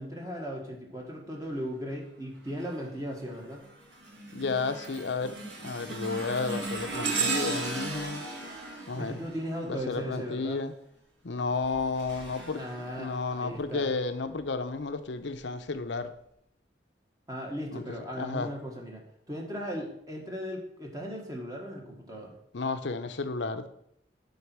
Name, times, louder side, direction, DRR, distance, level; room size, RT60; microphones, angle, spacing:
voice 1, 0.0-3.7 8.9-10.7 12.5-13.9 17.3-19.0 19.3-22.4, equal, 20° right, 0 dB, 1.4 m, -37 dB
sound 1, 2.5-2.9 3.3-10.2 11.4-13.6 14.2-14.4 15.3-15.4, right 3 dB, 90° right, 2.0 m, -36 dB
voice 2, 4.3-8.2 8.9-9.2 9.6-10.7 11.2-12.6 13.0-16.1 17.7-18.5 22.5-23.7, left 4 dB, 80° left, 9 dB, 0.7 m, -32 dB
8.7 x 4.0 x 6.1 m, 0.72 s
head